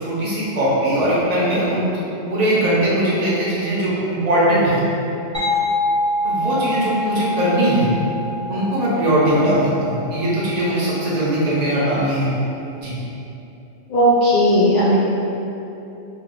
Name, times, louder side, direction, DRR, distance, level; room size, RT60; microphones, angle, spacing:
voice 1, 0.0-1.9 2.2-4.8 6.2-7.9 8.5-12.3 12.8-12.9, right 1 dB, 40° right, -8 dB, 0.7 m, -20 dB
sound 1, 5.3-10.8, left 1 dB, 5° left, 0.5 m, -25 dB
voice 2, 13.9-15.0, equal, 55° left, -12 dB, 0.7 m, -15 dB
2.9 x 2.2 x 3.8 m, 2.9 s
omnidirectional pair, 1.3 m